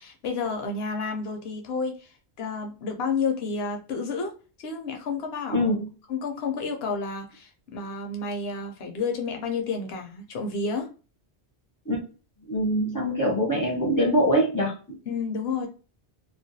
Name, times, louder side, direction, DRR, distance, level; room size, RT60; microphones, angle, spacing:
voice 1, 0.0-2.1 2.4-4.3 4.6-5.7 6.1-10.9 15.1-15.7, left 4 dB, 70° left, 3 dB, 0.8 m, -30 dB
voice 2, 5.5-5.9 11.9-12.0 12.5-14.7, equal, 20° left, -1 dB, 0.6 m, -23 dB
2.3 x 2.1 x 2.6 m, 0.36 s
omnidirectional pair, 1.1 m